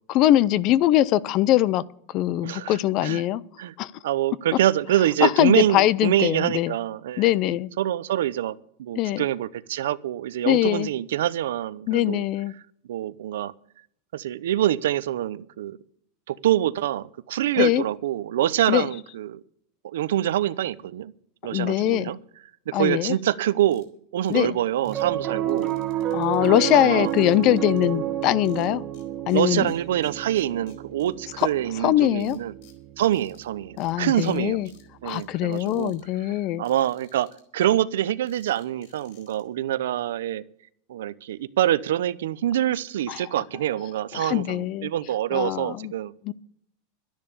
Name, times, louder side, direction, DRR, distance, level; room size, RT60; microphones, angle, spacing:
voice 1, 0.1-1.8 2.1-3.4 3.8-3.9 5.2-6.7 7.2-7.7 9.0-9.3 10.4-10.9 11.9-12.5 17.6-17.8 18.7-18.9 21.5-22.1 22.7-23.2 24.3-24.6 26.1-28.8 29.3-29.7 31.4-31.5 31.7-32.4 33.8-34.7 35.0-36.6 43.1-43.2 44.1-44.9 45.3-45.9 46.2-46.3, left 14 dB, 30° left, 21 dB, 0.4 m, -22 dB
voice 2, 2.4-3.2 3.6-3.7 4.0-7.3 7.8-12.2 12.9-13.5 14.1-15.8 16.3-19.4 19.8-21.1 21.4-22.2 22.7-23.9 24.1-25.8 26.4-27.1 29.3-32.5 33.0-34.6 35.0-35.9 36.6-40.4 40.9-46.1, right 12 dB, 80° right, 16 dB, 0.7 m, -25 dB
sound 1, 23.7-23.8 24.2-24.4 24.8-25.0 25.5-26.6 27.0-27.9 28.4-29.0 29.3-31.1 31.4-31.5 32.2-33.4 33.8-33.9 34.2-34.4 34.7-35.2 35.5-36.0 36.6-37.4 38.3-39.4, left 8 dB, 50° left, 4.6 m, -58 dB
Piano, 24.9-35.4, right 12 dB, 20° right, 1.2 m, -31 dB
12.5 x 10.5 x 6.9 m, 0.68 s
supercardioid pair, 180°, 0 cm